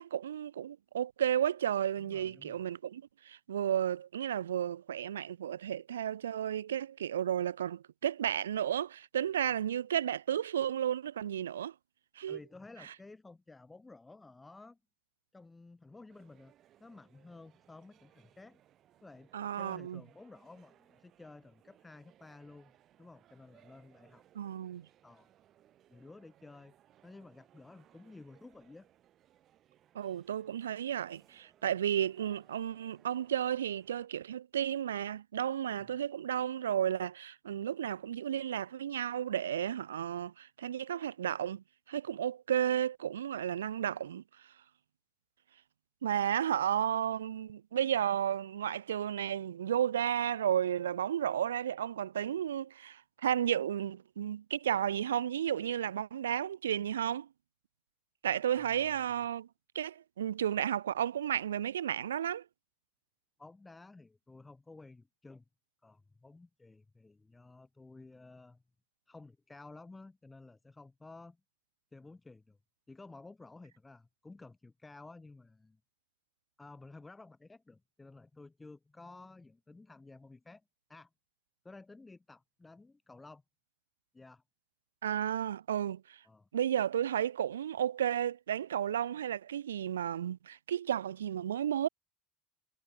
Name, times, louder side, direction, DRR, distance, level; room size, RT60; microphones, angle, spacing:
voice 1, 0.0-11.7 12.2-12.4 12.8-12.9 19.3-20.0 24.3-24.9 29.9-44.2 46.0-57.3 58.2-59.5 59.7-62.4 85.0-86.2 86.5-91.9, right 10 dB, 75° right, 0.7 m, -33 dB
voice 2, 2.0-2.6 12.3-14.8 15.3-16.5 16.8-18.6 19.0-19.3 19.5-22.7 23.0-24.2 25.0-25.3 25.9-26.7 27.0-28.9 35.8-35.9 58.5-59.1 63.4-65.4 65.8-68.6 69.1-71.4 71.9-72.6 72.9-75.8 76.6-80.6 80.9-81.1 81.6-83.4 84.1-84.4 86.2-86.5, left 3 dB, 15° left, 2.9 m, -53 dB
sound 1, 16.1-34.1, right 11 dB, 45° right, 7.8 m, -66 dB
figure-of-eight pair, 65°, 0 cm